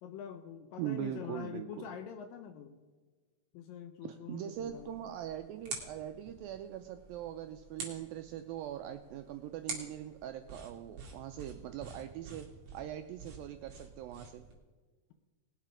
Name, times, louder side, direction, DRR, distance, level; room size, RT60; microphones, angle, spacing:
voice 1, 0.0-2.8 3.5-5.0, left 8 dB, 75° left, 7 dB, 2.1 m, -45 dB
voice 2, 0.8-1.9 4.1-12.5 12.7-14.4, right 11 dB, 85° right, 8 dB, 2.1 m, -41 dB
sound 1, 4.5-14.6, right 4 dB, 45° right, 3.1 m, -48 dB
20.0 x 7.4 x 5.0 m, 1.4 s
omnidirectional pair, 4.7 m